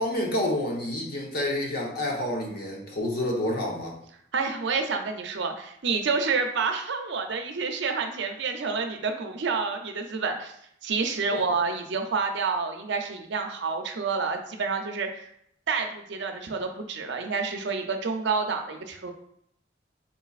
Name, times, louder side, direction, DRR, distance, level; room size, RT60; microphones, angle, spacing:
voice 1, 0.0-4.0 11.3-11.4, left 1 dB, 50° left, -1 dB, 0.9 m, -29 dB
voice 2, 4.3-10.5 10.8-15.3 15.7-19.1, right 4 dB, 60° right, 4 dB, 0.5 m, -28 dB
4.0 x 3.9 x 2.4 m, 0.70 s
head